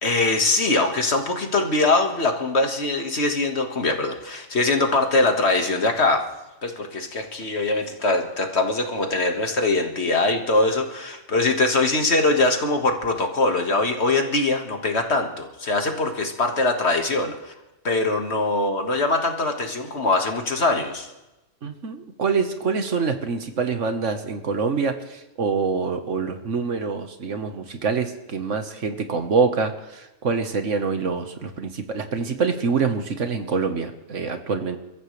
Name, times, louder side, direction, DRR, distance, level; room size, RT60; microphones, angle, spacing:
voice 1, 0.0-6.2 6.6-17.5 17.8-21.1, left 2 dB, 55° left, 4 dB, 2.0 m, -22 dB
voice 2, 21.6-34.8, right 5 dB, 70° right, 7 dB, 1.6 m, -25 dB
29.5 x 14.5 x 3.3 m, 1.0 s
omnidirectional pair, 1.3 m